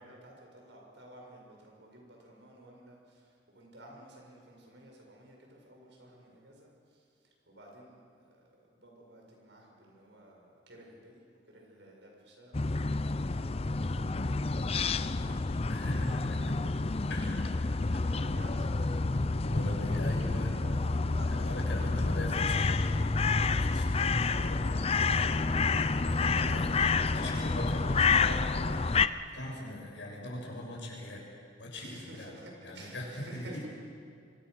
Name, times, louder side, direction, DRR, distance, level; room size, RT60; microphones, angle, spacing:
voice 1, 0.0-11.2 11.5-17.8 18.1-19.1 19.6-19.8 20.6-22.2 26.0-26.7 27.1-27.5 28.2-28.4 29.2-29.3 31.7-33.6, right 1 dB, 80° right, 0 dB, 6.6 m, -52 dB
sound 1, 12.5-29.1, left 3 dB, 35° left, 0.6 m, -29 dB
voice 2, 15.7-16.5 17.1-17.5 17.9-18.2 19.4-20.6 21.3-25.4 26.0-26.9 27.1-31.2 31.6-32.3 32.6-33.7, left 1 dB, 90° left, -1 dB, 6.8 m, -41 dB
26.5 x 23.5 x 6.7 m, 2.3 s
head